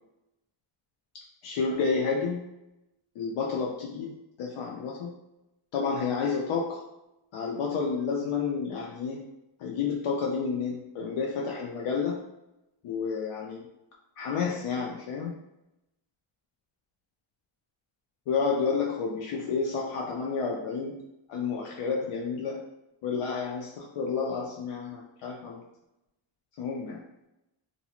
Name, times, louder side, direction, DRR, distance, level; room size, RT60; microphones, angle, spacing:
voice 1, 1.4-2.4 3.2-5.1 5.7-6.8 7.3-9.3 9.6-12.2 12.8-13.7 14.2-15.4 18.3-21.0 21.3-22.6 23.0-25.6 26.6-27.0, left 5 dB, 85° left, -2 dB, 0.6 m, -30 dB
2.6 x 2.3 x 2.9 m, 0.89 s
wide cardioid pair, 165°, 49 cm